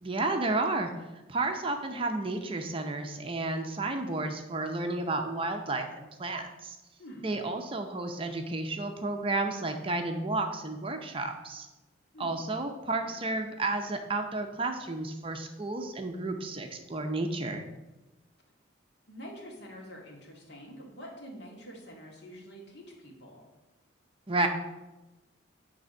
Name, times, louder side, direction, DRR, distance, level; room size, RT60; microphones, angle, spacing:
voice 1, 0.0-0.9 1.3-6.8 7.2-11.7 12.2-17.6 24.3-24.5, right 2 dB, 30° right, 5 dB, 0.6 m, -32 dB
voice 2, 7.0-7.3 12.1-12.4 13.0-13.2 19.1-23.4, equal, 60° left, -1 dB, 1.9 m, -46 dB
9.2 x 3.4 x 6.3 m, 1.1 s
head